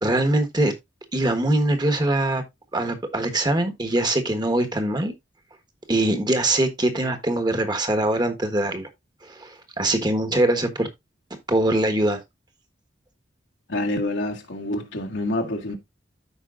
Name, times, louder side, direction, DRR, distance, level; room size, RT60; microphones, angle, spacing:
voice 1, 0.0-0.7 1.1-2.4 2.7-5.1 5.9-8.9 9.2-10.9 11.5-12.2, right 1 dB, 25° right, 1.3 m, -22 dB
voice 2, 13.7-15.8, left 1 dB, 85° left, 1.8 m, -27 dB
13.5 x 5.1 x 2.5 m
head